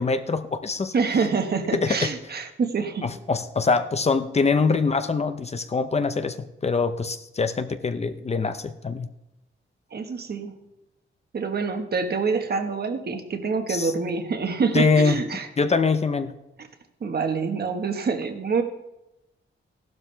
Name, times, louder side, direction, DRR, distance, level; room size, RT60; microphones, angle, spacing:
voice 1, 0.0-0.9 1.7-2.1 3.0-9.1 13.7-13.9 14.7-15.2 15.6-16.3, left 4 dB, 30° left, 10 dB, 0.7 m, -24 dB
voice 2, 0.9-3.1 9.9-10.5 11.3-15.5 16.6-16.7 17.0-18.6, right 5 dB, 50° right, 6 dB, 1.4 m, -26 dB
15.0 x 12.0 x 3.4 m, 0.92 s
wide cardioid pair, 140°, 21 cm